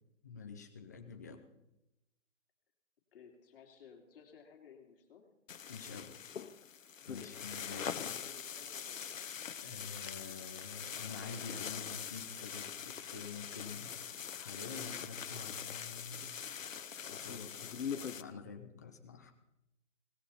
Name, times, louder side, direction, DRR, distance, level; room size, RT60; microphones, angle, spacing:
voice 1, 0.2-1.4 5.7-6.2 7.1-8.1 9.6-16.3 17.1-19.3, left 5 dB, 15° left, 5 dB, 0.5 m, -48 dB
voice 2, 3.1-5.3 7.2-9.0, left 7 dB, 45° left, 1 dB, 2.9 m, -58 dB
sound 1, 5.5-18.2, left 7 dB, 80° left, 1.0 m, -43 dB
18.0 x 15.5 x 4.2 m, 0.90 s
hypercardioid pair, 160°, 38 cm